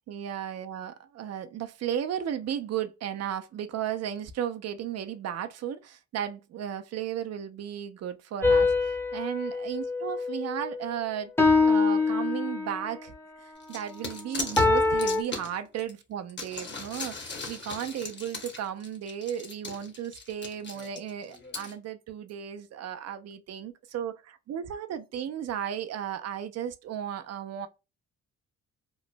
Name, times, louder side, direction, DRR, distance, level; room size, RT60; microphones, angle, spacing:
voice 1, 0.1-11.3 11.7-13.1 13.4-27.7, right 9 dB, 55° right, 0.5 m, -35 dB
sound 1, 8.4-10.8 11.4-12.9 14.6-15.2, left 3 dB, 10° left, 0.7 m, -24 dB
sound 2, 13.6-15.9 16.3-21.7, left 3 dB, 35° left, 1.0 m, -39 dB
3.0 x 2.1 x 2.5 m
cardioid pair, 90°, 30 cm